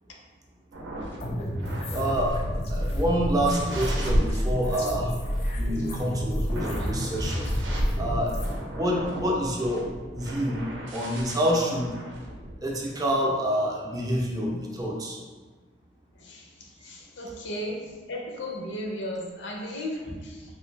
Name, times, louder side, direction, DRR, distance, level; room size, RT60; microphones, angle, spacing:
sound 1, 0.7-12.6, right 1 dB, 85° right, 0.6 m, -34 dB
sound 2, 1.2-8.6, equal, 35° left, 0.5 m, -29 dB
voice 1, 1.9-2.4 2.7-5.1 5.6-7.5 8.0-8.4 8.7-10.6 10.9-11.9 12.6-15.2 20.1-20.2, equal, 20° right, -1 dB, 0.4 m, -27 dB
voice 2, 16.2-17.8 18.1-20.4, left 1 dB, 80° left, 0 dB, 0.6 m, -35 dB
3.2 x 2.5 x 3.2 m, 1.3 s
head